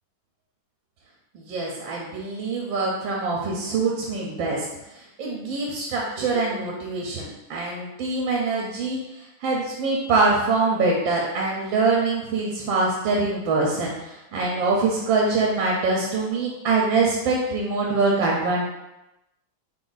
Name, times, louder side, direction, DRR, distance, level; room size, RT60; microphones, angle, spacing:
voice 1, 1.3-18.7, right 3 dB, 80° right, -2 dB, 1.4 m, -24 dB
3.7 x 2.6 x 3.9 m, 0.94 s
omnidirectional pair, 2.1 m